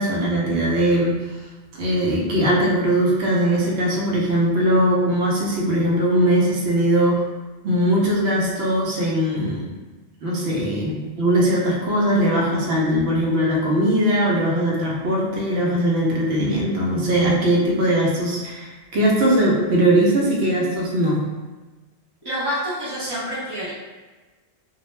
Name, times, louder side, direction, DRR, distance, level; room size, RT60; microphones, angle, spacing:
voice 1, 0.0-1.4 1.7-7.2 7.6-9.7 10.2-21.3, right 1 dB, 85° right, -4 dB, 0.9 m, -20 dB
voice 2, 22.2-23.7, equal, 35° right, -10 dB, 0.4 m, -27 dB
2.3 x 2.0 x 3.0 m, 1.2 s
omnidirectional pair, 1.1 m